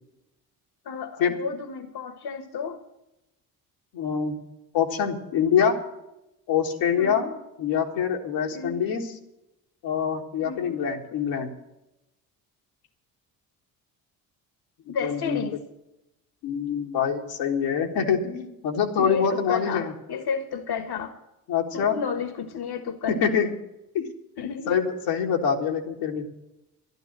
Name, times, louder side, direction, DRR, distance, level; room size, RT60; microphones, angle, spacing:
voice 1, 0.8-2.8 7.0-7.3 8.5-8.8 10.4-10.8 14.9-15.6 19.0-21.2 21.7-23.5 24.4-24.7, left 6 dB, 55° left, 10 dB, 1.5 m, -32 dB
voice 2, 3.9-4.4 4.7-5.8 6.5-7.3 7.6-9.1 9.8-11.5 14.9-15.4 16.4-19.9 21.5-22.0 23.1-23.5 23.9-24.1 24.7-26.3, left 7 dB, 80° left, 1 dB, 1.9 m, -25 dB
12.0 x 11.5 x 7.5 m, 0.92 s
hypercardioid pair, 50°, 44 cm